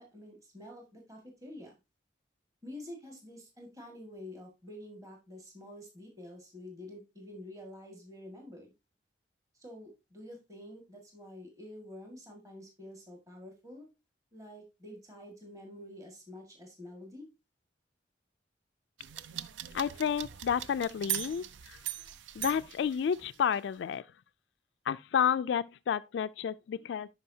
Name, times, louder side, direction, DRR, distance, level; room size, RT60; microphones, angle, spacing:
voice 1, 0.0-1.8 2.6-8.7 9.6-13.9 14.3-17.3, left 1 dB, 20° right, 1.7 m, -48 dB
sound 1, 19.0-23.5, right 12 dB, 85° right, 0.4 m, -40 dB
voice 2, 19.7-21.8 22.4-24.0 24.9-27.1, left 8 dB, 75° left, 0.3 m, -31 dB
11.0 x 4.8 x 2.7 m
head